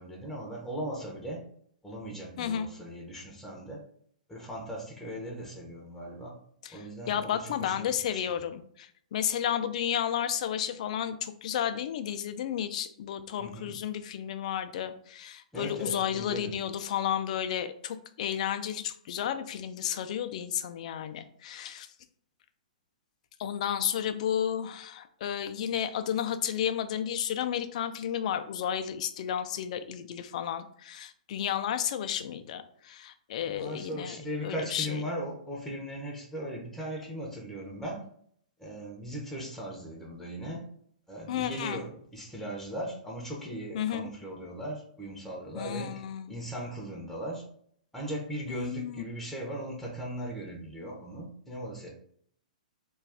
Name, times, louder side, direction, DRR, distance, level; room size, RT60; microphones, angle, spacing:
voice 1, 0.0-1.4 1.8-3.8 4.3-6.4 6.7-8.4 13.4-13.7 15.5-16.6 33.4-38.0 38.6-40.6 41.1-47.4 47.9-51.9, equal, 5° left, -2 dB, 0.6 m, -38 dB
voice 2, 2.4-2.7 6.6-21.9 23.4-34.2 34.4-35.0 41.3-41.8 43.7-44.1 45.5-46.3 48.5-49.0, left 9 dB, 55° left, 9 dB, 0.3 m, -32 dB
2.3 x 2.3 x 3.4 m, 0.63 s
hypercardioid pair, 125°, 4 cm